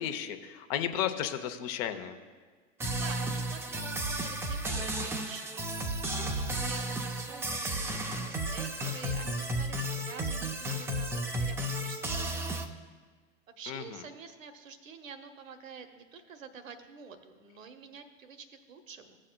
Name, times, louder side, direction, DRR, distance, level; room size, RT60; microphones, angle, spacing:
voice 1, 0.0-2.2 13.7-13.8, left 10 dB, 50° left, 8 dB, 0.8 m, -33 dB
sound 1, 2.8-12.7, right 1 dB, 5° right, 0.4 m, -33 dB
voice 2, 2.8-5.5 6.2-12.7 13.6-19.2, right 6 dB, 80° right, 7 dB, 1.0 m, -48 dB
15.5 x 7.4 x 2.3 m, 1.5 s
hypercardioid pair, 100°, 39 cm